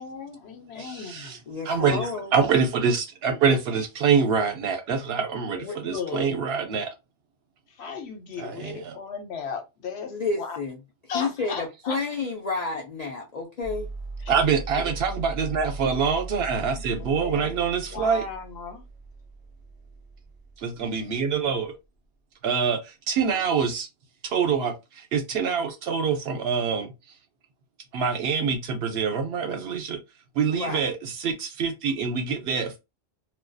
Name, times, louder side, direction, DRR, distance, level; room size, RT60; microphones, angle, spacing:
voice 1, 0.0-1.4 5.5-6.3 7.7-10.6 11.1-12.0 17.1-17.5 17.8-18.8 25.4-25.5, left 5 dB, 75° left, 0.9 m, -36 dB
voice 2, 0.8-1.4 1.7-6.9 8.4-8.9 14.3-18.2 20.6-21.7 22.4-23.9 24.3-26.9 27.9-30.0 30.4-32.8, right 6 dB, 70° right, 0.8 m, -25 dB
voice 3, 1.5-2.3 10.1-10.8 11.1-13.9 14.3-14.5 17.0-17.1 30.5-30.9, left 3 dB, 60° left, 0.4 m, -30 dB
sound 1, 13.6-21.7, right 3 dB, 45° right, 0.6 m, -39 dB
2.3 x 2.2 x 2.5 m
omnidirectional pair, 1.2 m